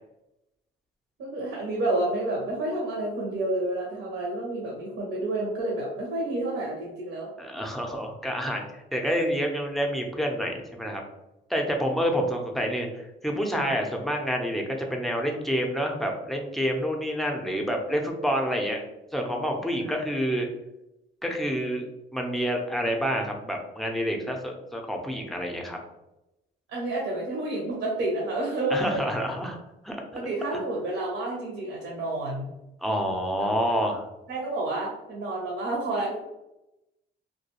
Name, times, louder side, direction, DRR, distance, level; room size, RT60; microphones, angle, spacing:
voice 1, 1.2-7.3 19.8-20.0 26.7-29.0 30.1-32.5 33.4-33.5 34.3-36.2, right 2 dB, 75° right, -3 dB, 0.7 m, -29 dB
voice 2, 7.4-11.0 11.5-18.8 19.1-20.5 21.2-21.9 22.1-25.8 28.7-29.6 29.8-30.0 30.5-30.6 32.8-34.0, equal, ahead, 1 dB, 0.5 m, -28 dB
2.4 x 2.2 x 2.8 m, 0.92 s
cardioid pair, 90°, 20 cm